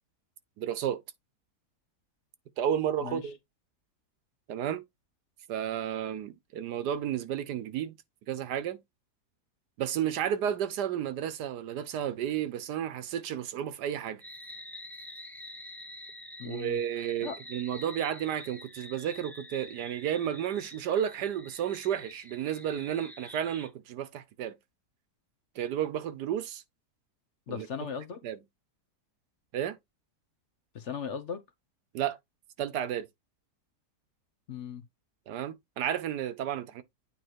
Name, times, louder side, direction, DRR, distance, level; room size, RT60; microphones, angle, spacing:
voice 1, 0.6-1.0 2.6-3.4 4.5-4.8 5.5-8.0 8.3-8.8 9.8-14.2 16.4-24.6 25.5-26.6 27.5-27.7 28.2-28.4 29.5-29.8 31.9-32.2 32.6-33.1 35.3-36.8, right 10 dB, 80° right, 1.4 m, -32 dB
sound 1, 14.2-23.7, left 1 dB, ahead, 0.5 m, -47 dB
voice 2, 16.4-16.8 17.2-17.4 27.5-28.2 30.7-31.4 34.5-34.8, left 7 dB, 55° left, 1.0 m, -37 dB
9.0 x 3.0 x 4.5 m
omnidirectional pair, 1.7 m